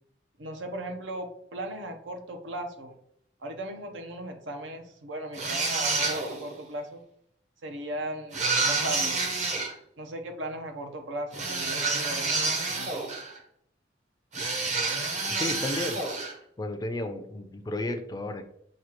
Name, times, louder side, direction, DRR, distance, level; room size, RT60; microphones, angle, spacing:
voice 1, 0.4-3.0 3.4-7.0 7.6-9.2 10.0-13.1, right 1 dB, 85° right, 4 dB, 0.8 m, -37 dB
sound 1, 5.3-6.5 8.3-9.7 11.3-13.4 14.3-16.4, right 3 dB, 40° right, 0.7 m, -28 dB
voice 2, 15.3-16.1 16.6-18.5, left 2 dB, 20° left, 7 dB, 0.3 m, -33 dB
6.2 x 2.4 x 2.9 m, 0.68 s
head